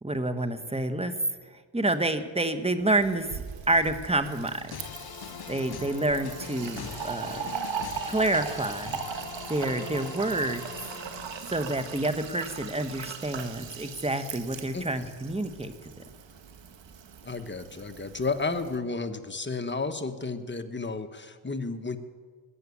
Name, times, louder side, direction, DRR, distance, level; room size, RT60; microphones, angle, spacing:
voice 1, 0.0-1.1 1.5-4.8 5.5-7.4 8.1-9.0 9.5-10.6 11.5-15.7, right 2 dB, 10° right, 9 dB, 1.4 m, -28 dB
Fill (with liquid), 2.9-18.8, right 7 dB, 60° right, 1.6 m, -39 dB
sound 1, 4.7-11.7, left 8 dB, 45° left, 1.0 m, -42 dB
voice 2, 14.7-15.1 17.2-22.0, left 3 dB, 20° left, 8 dB, 1.3 m, -32 dB
20.5 x 7.7 x 8.6 m, 1.5 s
cardioid pair, 75°, 50 cm